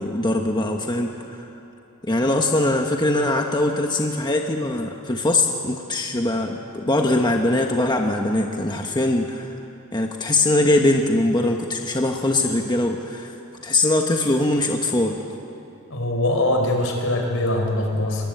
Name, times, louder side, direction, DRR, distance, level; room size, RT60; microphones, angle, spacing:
voice 1, 0.0-1.5 2.0-9.6 9.9-13.4 13.6-15.2, left 2 dB, 20° left, 2 dB, 1.2 m, -22 dB
voice 2, 15.9-18.3, left 1 dB, 70° left, 3 dB, 4.6 m, -22 dB
24.0 x 22.5 x 9.3 m, 2.9 s
head